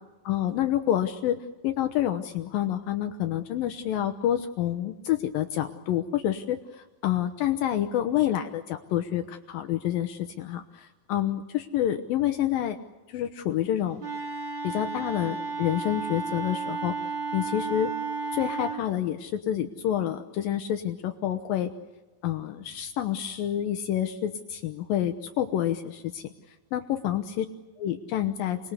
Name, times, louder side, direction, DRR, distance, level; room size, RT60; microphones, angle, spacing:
voice 1, 0.3-1.4 1.6-12.8 13.1-14.0 14.6-16.9 17.3-17.9 18.3-21.7 22.2-26.3 26.7-27.5 27.8-28.6, left 11 dB, 75° left, 7 dB, 2.6 m, -28 dB
Wind instrument woodwind instrument, 14.0-18.8, right 4 dB, 40° right, 2.0 m, -33 dB
29.0 x 20.0 x 8.2 m, 1.2 s
omnidirectional pair, 4.3 m